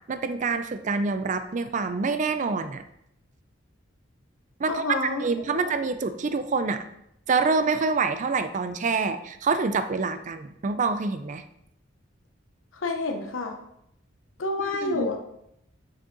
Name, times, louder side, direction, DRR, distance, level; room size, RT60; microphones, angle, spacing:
voice 1, 0.1-2.8 4.6-6.8 7.3-11.4 14.8-15.1, right 4 dB, 40° right, 10 dB, 0.4 m, -26 dB
voice 2, 4.7-5.3 5.5-5.7 12.7-13.6 14.4-15.2, left 3 dB, 80° left, 4 dB, 0.8 m, -29 dB
6.5 x 6.2 x 3.9 m, 0.78 s
head